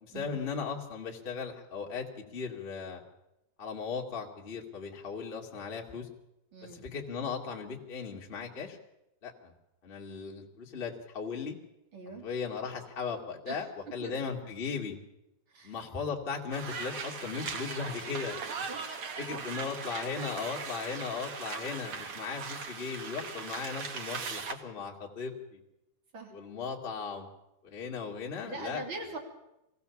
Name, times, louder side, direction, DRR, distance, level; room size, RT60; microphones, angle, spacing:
voice 1, 0.0-2.1 2.3-3.0 3.6-6.1 6.6-8.8 9.2-9.5 9.8-11.5 12.2-15.0 15.6-18.4 19.2-25.6 26.3-27.3 27.6-28.8, left 5 dB, 25° left, 0 dB, 1.3 m, -37 dB
voice 2, 6.5-6.9 11.9-12.3 13.5-13.6 14.0-14.1 15.5-15.7 18.7-19.0 19.3-19.4 26.1-26.3 28.4-29.2, right 2 dB, 30° right, 1 dB, 3.5 m, -42 dB
sound 1, 16.5-24.5, right 5 dB, 75° right, 1.2 m, -39 dB
23.5 x 16.0 x 7.1 m, 0.90 s
omnidirectional pair, 4.6 m